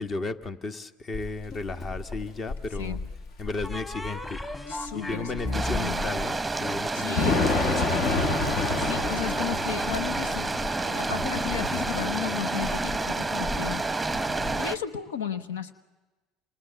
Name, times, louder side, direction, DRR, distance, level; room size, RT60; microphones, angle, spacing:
voice 1, 0.0-3.0 3.4-4.4 4.7-8.0, left 3 dB, 40° left, 10 dB, 1.6 m, -34 dB
Thunder / Rain, 1.1-14.6, left 3 dB, 60° left, 2.0 m, -31 dB
sound 1, 1.5-2.4 3.6-7.3, left 1 dB, 20° left, 3.6 m, -37 dB
voice 2, 4.7-6.0 6.9-7.4 8.5-13.8 14.6-15.7, left 8 dB, 85° left, 13 dB, 1.0 m, -34 dB
sound 2, 5.5-14.8, right 3 dB, 10° right, 0.9 m, -29 dB
29.0 x 28.5 x 7.0 m, 1.2 s
hypercardioid pair, 75°, 0 cm